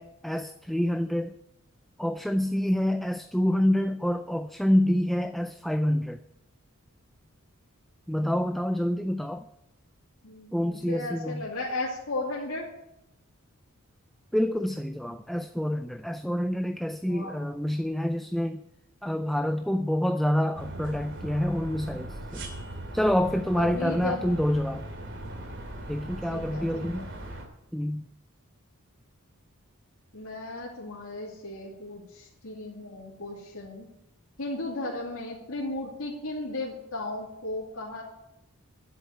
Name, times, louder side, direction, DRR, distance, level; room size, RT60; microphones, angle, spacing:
voice 1, 0.0-1.3 2.0-6.2 8.1-9.5 10.5-11.5 14.3-18.6 19.0-22.5 22.9-24.9 25.9-27.1 27.7-28.1, equal, ahead, 0.4 m, -27 dB
voice 2, 10.2-12.7 17.0-17.5 23.5-24.3 26.3-27.0 30.1-33.9 34.4-38.0, left 2 dB, 80° left, 2.6 m, -35 dB
sound 1, 20.5-27.5, right 1 dB, 60° right, 2.6 m, -39 dB
10.5 x 7.9 x 9.8 m
head